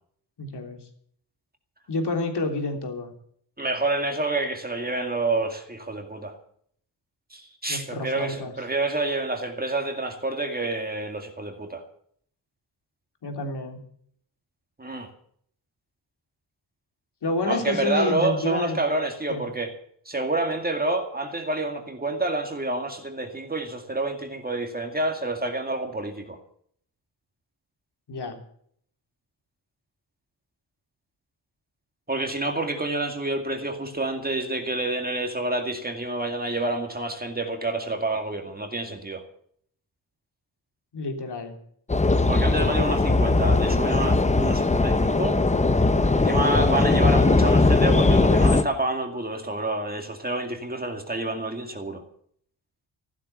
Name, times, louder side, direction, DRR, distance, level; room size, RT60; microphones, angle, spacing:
voice 1, 0.4-0.8 1.9-3.1 7.7-8.5 13.2-13.8 17.2-18.8 19.3-19.4 28.1-28.4 40.9-41.6, left 2 dB, 60° left, 4 dB, 3.3 m, -29 dB
voice 2, 3.6-6.3 7.3-11.8 14.8-15.1 17.4-19.7 20.1-26.4 32.1-39.2 42.3-45.4 46.1-52.0, right 2 dB, 20° right, 4 dB, 2.2 m, -28 dB
sound 1, 41.9-48.6, left 3 dB, 15° left, 0.8 m, -20 dB
15.0 x 12.0 x 6.9 m, 0.63 s
wide cardioid pair, 135°, 45 cm